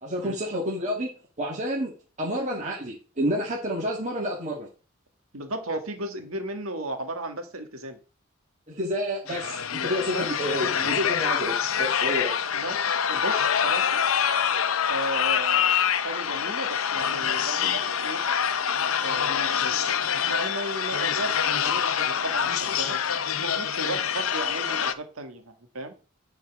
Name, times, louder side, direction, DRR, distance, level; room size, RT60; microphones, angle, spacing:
voice 1, 0.0-1.9 2.2-4.7 8.7-12.3, equal, 35° right, -2 dB, 2.0 m, -29 dB
voice 2, 5.3-8.0 10.1-10.4 12.5-14.0 14.9-18.2 19.0-19.9 20.3-23.0 23.4-25.9, right 2 dB, 80° right, 7 dB, 1.9 m, -35 dB
sound 1, 9.3-24.9, left 8 dB, 75° left, 0.7 m, -26 dB
10.5 x 4.7 x 6.1 m, 0.36 s
head